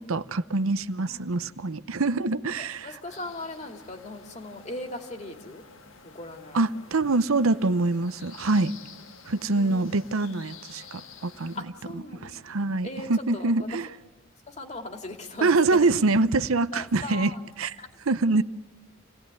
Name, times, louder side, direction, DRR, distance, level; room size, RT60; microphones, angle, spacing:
voice 1, 0.1-2.9 6.5-8.7 9.3-11.5 11.9-13.9 15.4-17.3 17.6-17.7 18.1-18.4, right 3 dB, 85° right, 0.8 m, -25 dB
voice 2, 2.1-5.6 6.0-6.8 9.5-9.8 11.5-13.5 14.5-15.9 16.7-17.4 17.8-17.9, left 2 dB, 35° left, 2.5 m, -39 dB
sound 1, 3.1-11.6, left 6 dB, 75° left, 1.5 m, -50 dB
28.0 x 17.5 x 9.5 m
head